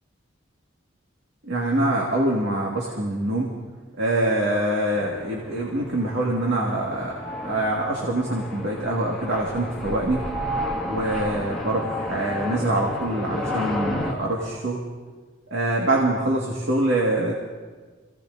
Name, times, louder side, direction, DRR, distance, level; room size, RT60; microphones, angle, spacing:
voice 1, 1.4-3.5 4.0-7.2 7.4-10.2 10.9-14.8 15.5-17.3, right 1 dB, 75° right, -2 dB, 1.9 m, -24 dB
sound 1, 4.9-14.1, left 1 dB, 5° left, 2.0 m, -32 dB
26.5 x 16.5 x 2.7 m, 1.4 s
head